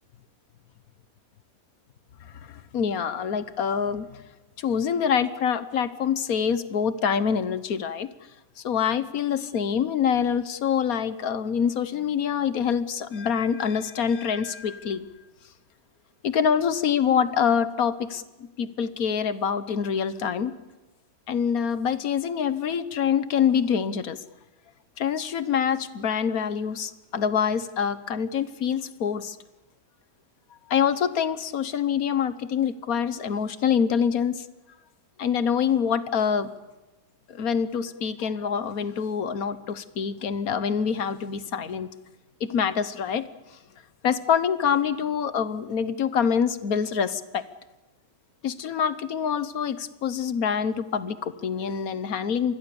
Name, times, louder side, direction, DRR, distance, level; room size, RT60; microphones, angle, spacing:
voice 1, 2.4-4.2 4.6-8.1 8.6-15.0 16.2-18.2 18.6-20.5 21.3-24.2 25.0-29.4 30.7-34.5 35.2-36.5 37.3-41.9 42.4-43.3 44.0-47.4 48.4-52.5, left 7 dB, 75° left, 13 dB, 1.5 m, -25 dB
26.5 x 20.5 x 7.1 m, 1.1 s
omnidirectional pair, 1.6 m